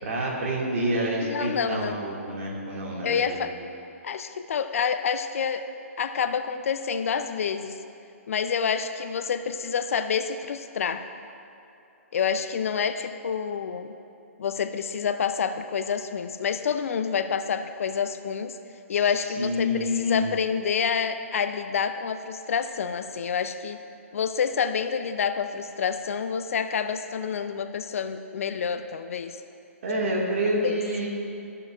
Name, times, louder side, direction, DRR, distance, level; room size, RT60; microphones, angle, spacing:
voice 1, 0.0-3.4 19.4-20.3 29.8-31.1, equal, 65° right, -2 dB, 1.9 m, -27 dB
voice 2, 1.2-1.9 3.0-3.5 4.0-5.7 6.0-7.8 8.3-11.0 12.1-13.9 14.4-18.6 18.9-23.8 24.1-29.4 30.6-31.1, left 6 dB, 70° left, 9 dB, 0.4 m, -28 dB
14.5 x 6.7 x 2.4 m, 2.7 s
hypercardioid pair, 145°, 8 cm